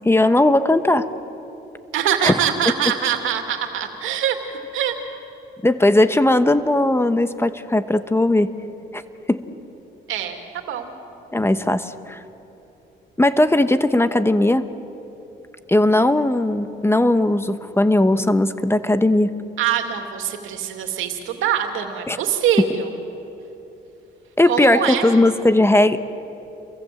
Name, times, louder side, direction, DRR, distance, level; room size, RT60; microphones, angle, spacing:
voice 1, 0.0-1.1 2.2-2.3 5.6-8.5 8.9-9.0 9.3-9.4 11.3-12.2 13.2-14.6 15.7-19.3 22.1-22.2 24.4-26.0, left 1 dB, 10° left, 10 dB, 1.1 m, -18 dB
voice 2, 1.9-4.4 4.7-4.9 10.1-10.4 10.6-10.9 19.6-22.9 24.4-25.1, right 9 dB, 85° right, 5 dB, 2.6 m, -23 dB
29.0 x 23.0 x 7.8 m, 3.0 s
cardioid pair, 90°, 20 cm